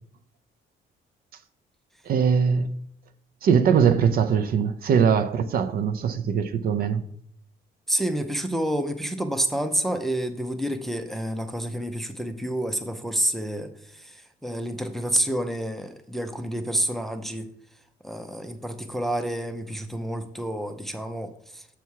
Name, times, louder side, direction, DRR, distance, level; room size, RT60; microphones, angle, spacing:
voice 1, 2.0-2.7 3.4-7.0, right 7 dB, 55° right, 0.6 m, -21 dB
voice 2, 7.9-17.5 18.0-21.7, right 1 dB, ahead, 0.5 m, -29 dB
6.9 x 5.7 x 4.6 m
cardioid pair, 155°, 19 cm